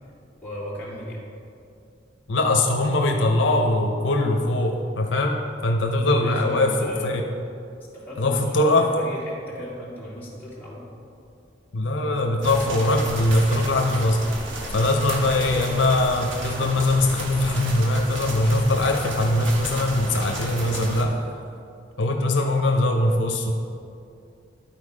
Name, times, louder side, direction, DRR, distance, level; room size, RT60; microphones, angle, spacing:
voice 1, 0.4-1.2 6.1-7.3 7.9-10.8, left 1 dB, 10° left, -8 dB, 2.1 m, -36 dB
voice 2, 2.3-5.4 5.6-7.2 8.2-8.9 11.7-14.2 14.7-21.1 22.0-23.5, left 2 dB, 80° left, 3 dB, 0.7 m, -21 dB
sound 1, 12.4-21.0, right 1 dB, 85° right, 1.2 m, -33 dB
11.5 x 4.3 x 4.9 m, 2.5 s
head